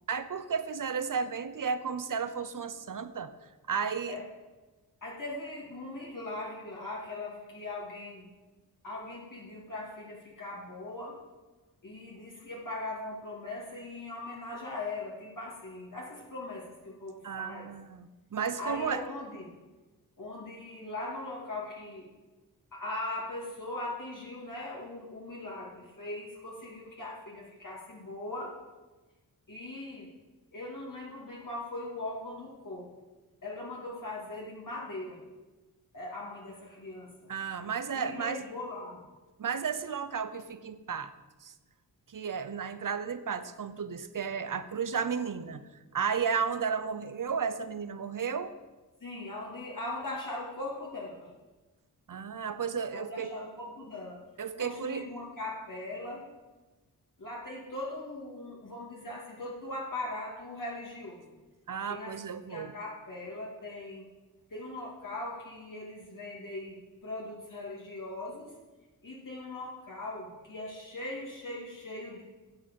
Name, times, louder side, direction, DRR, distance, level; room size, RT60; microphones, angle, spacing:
voice 1, 0.1-4.2 17.2-19.0 37.3-38.4 39.4-41.1 41.4-41.5 42.1-48.5 52.1-53.4 54.4-55.1 61.7-62.7, right 6 dB, 55° right, 12 dB, 0.8 m, -33 dB
voice 2, 5.0-8.3 8.8-11.2 11.8-17.7 18.6-19.5 20.2-22.1 22.7-28.5 29.5-30.1 30.5-32.9 33.4-35.2 35.9-37.3 37.9-39.0 49.0-51.3 52.9-54.2 54.6-56.3 57.2-61.3 61.9-62.2 62.5-64.1 64.5-68.5 69.0-72.2, left 2 dB, 55° left, -4 dB, 2.7 m, -40 dB
8.7 x 8.2 x 7.4 m, 1.2 s
cardioid pair, 60°, 38 cm